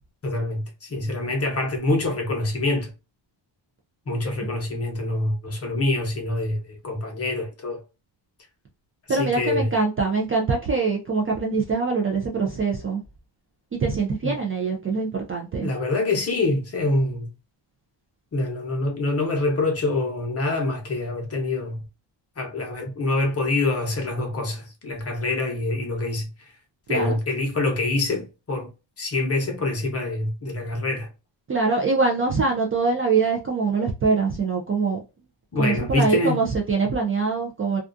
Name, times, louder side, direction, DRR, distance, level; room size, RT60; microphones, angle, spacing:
voice 1, 0.2-2.9 4.1-7.8 9.1-9.7 14.2-14.4 15.6-17.3 18.3-21.8 22.4-26.5 26.9-28.7 29.0-31.1 35.5-36.4, left 2 dB, 30° left, 0.7 m, -25 dB
voice 2, 9.1-13.0 13.7-15.7 26.9-27.2 31.5-35.0 35.6-37.8, right 4 dB, 30° right, 0.4 m, -23 dB
2.4 x 2.4 x 2.5 m
wide cardioid pair, 150°, 46 cm